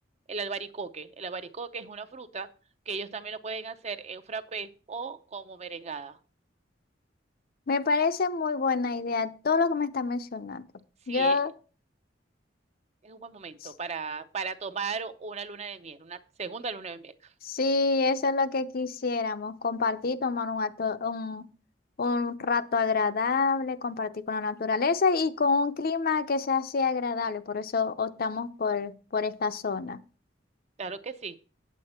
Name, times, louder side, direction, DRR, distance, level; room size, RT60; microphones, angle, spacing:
voice 1, 0.3-2.5 2.9-6.2 11.1-11.4 13.0-17.1 30.8-31.4, right 5 dB, 35° right, 11 dB, 0.6 m, -36 dB
voice 2, 7.7-10.6 11.1-11.5 13.6-13.7 17.4-21.5 22.0-30.0, left 4 dB, 55° left, 11 dB, 0.6 m, -27 dB
8.7 x 8.3 x 4.3 m, 0.37 s
head